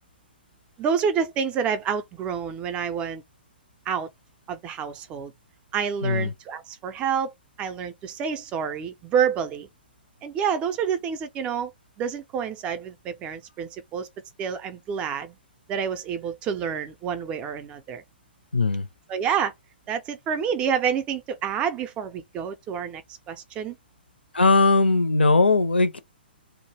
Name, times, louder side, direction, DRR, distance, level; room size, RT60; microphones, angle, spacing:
voice 1, 0.8-3.2 3.9-4.1 4.5-5.3 5.7-7.3 7.6-9.7 10.2-11.7 12.0-14.1 14.4-15.4 15.7-18.0 19.1-19.5 19.9-23.0 23.3-23.8, right 7 dB, 20° right, 0.4 m, -28 dB
voice 2, 6.0-6.3 18.5-18.9 24.3-26.0, left 3 dB, 75° left, 0.5 m, -19 dB
2.2 x 2.0 x 3.2 m
figure-of-eight pair, 120°, 6 cm